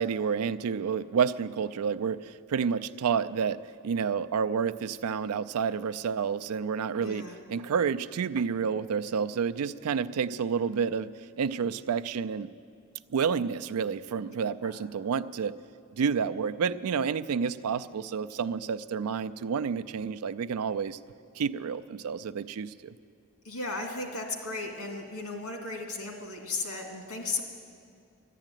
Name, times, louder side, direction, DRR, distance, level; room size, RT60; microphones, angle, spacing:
voice 1, 0.0-3.6 3.8-11.1 11.4-12.5 13.1-15.5 15.9-21.0 21.4-22.9, right 6 dB, 85° right, 13 dB, 0.4 m, -29 dB
voice 2, 7.0-7.4 14.6-14.7 23.4-27.4, left 3 dB, 90° left, 2 dB, 2.2 m, -35 dB
12.0 x 11.0 x 9.1 m, 2.3 s
head